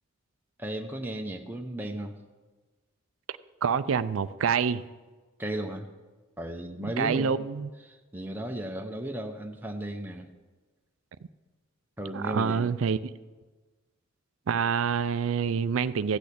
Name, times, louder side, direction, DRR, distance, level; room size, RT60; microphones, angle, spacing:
voice 1, 0.6-2.1 5.4-5.9 6.4-7.4 7.8-10.3 12.0-12.7, right 1 dB, 10° right, 2 dB, 0.8 m, -35 dB
voice 2, 3.6-4.8 6.8-7.7 12.1-13.0 14.5-16.2, right 6 dB, 70° right, 14 dB, 0.4 m, -27 dB
15.0 x 6.3 x 8.4 m, 1.3 s
head